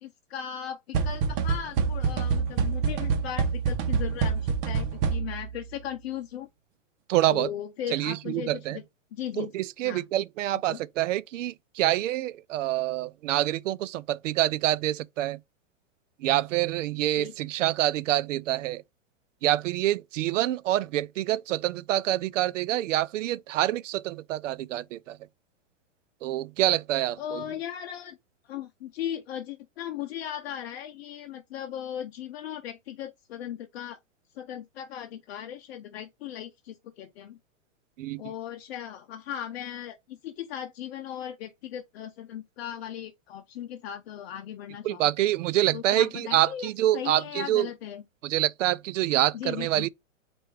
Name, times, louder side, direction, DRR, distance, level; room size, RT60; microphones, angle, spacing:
voice 1, 0.0-6.5 7.3-8.8 9.1-9.5 9.8-10.0 10.7-10.8 17.2-17.3 27.2-28.2 28.5-34.0 34.4-37.4 38.2-45.0 45.7-48.0 49.3-49.9, left 10 dB, 55° left, 0.6 m, -37 dB
sound 1, 0.9-5.5, right 5 dB, 45° right, 1.0 m, -27 dB
voice 2, 7.1-7.5 7.9-8.8 9.4-15.4 16.2-18.8 19.4-25.2 26.2-27.4 38.0-38.3 44.8-47.7 48.2-49.9, right 14 dB, 70° right, 0.5 m, -26 dB
4.3 x 2.6 x 4.6 m
hypercardioid pair, 135°, 38 cm